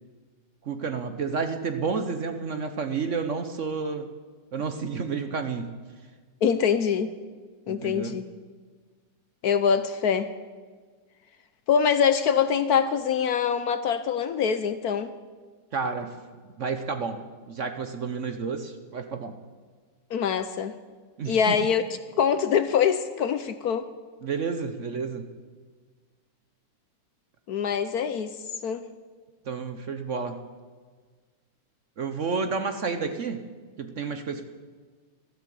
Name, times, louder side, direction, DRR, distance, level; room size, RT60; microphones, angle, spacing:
voice 1, 0.7-4.1 4.5-5.7 7.7-8.2 15.7-16.1 16.6-17.2 17.5-19.3 21.2-21.6 24.2-25.3 29.5-30.4 32.0-33.5 33.8-34.5, right 5 dB, 50° right, 8 dB, 1.0 m, -30 dB
voice 2, 6.4-7.1 7.7-8.3 9.4-10.3 11.7-15.1 20.1-20.7 21.3-21.8 22.2-23.9 27.5-28.4 28.6-28.8, left 7 dB, 65° left, 11 dB, 1.1 m, -24 dB
15.0 x 13.0 x 7.6 m, 1.5 s
omnidirectional pair, 2.0 m